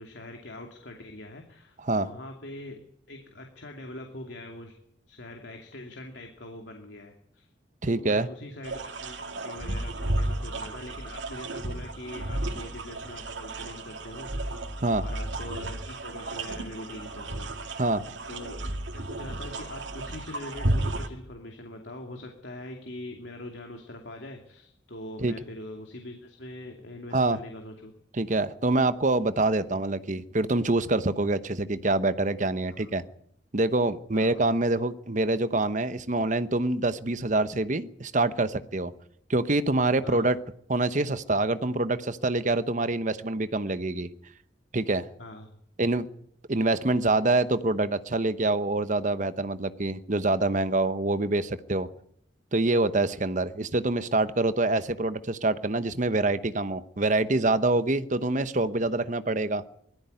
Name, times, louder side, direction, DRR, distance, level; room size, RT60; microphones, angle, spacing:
voice 1, 0.0-2.8 3.1-4.7 5.1-7.5 7.9-17.7 18.3-27.9 32.7-32.9 34.1-34.5 40.0-40.3 45.2-45.5, left 1 dB, 70° left, 3 dB, 2.6 m, -43 dB
voice 2, 7.8-8.3 14.8-15.0 17.8-18.0 25.2-25.3 27.1-27.4 28.2-33.0 33.5-38.9 39.3-40.4 40.7-44.1 44.7-45.1 45.8-46.1 46.5-51.9 52.5-59.6, right 2 dB, 40° right, 13 dB, 1.0 m, -25 dB
sound 1, 8.6-21.1, right 1 dB, 80° right, 2.3 m, -33 dB
20.0 x 14.5 x 9.4 m, 0.71 s
head